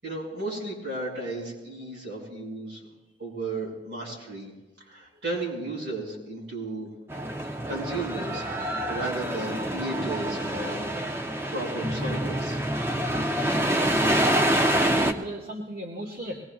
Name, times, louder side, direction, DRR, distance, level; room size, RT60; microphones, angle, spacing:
voice 1, 0.0-2.8 3.2-4.5 4.9-6.9 7.7-11.0 11.5-12.6, right 2 dB, 85° right, -2 dB, 6.0 m, -34 dB
sound 1, 7.1-15.1, right 1 dB, 15° right, 0.6 m, -26 dB
voice 2, 13.7-14.3 14.8-16.4, right 1 dB, 55° right, -2 dB, 1.5 m, -36 dB
22.5 x 20.0 x 2.4 m, 1.1 s
head